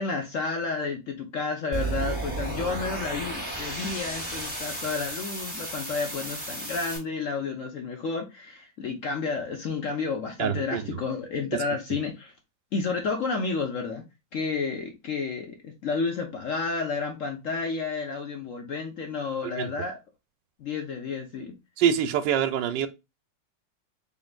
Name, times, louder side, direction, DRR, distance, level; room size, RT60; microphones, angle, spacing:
voice 1, 0.0-12.3 12.7-14.0 14.3-19.9 20.6-21.5, left 4 dB, 60° left, 0.9 m, -31 dB
sound 1, 1.7-7.0, right 2 dB, 5° right, 1.4 m, -33 dB
voice 2, 10.4-11.0 19.4-19.7 21.8-22.9, right 9 dB, 75° right, 1.2 m, -25 dB
3.8 x 3.7 x 2.3 m
omnidirectional pair, 2.0 m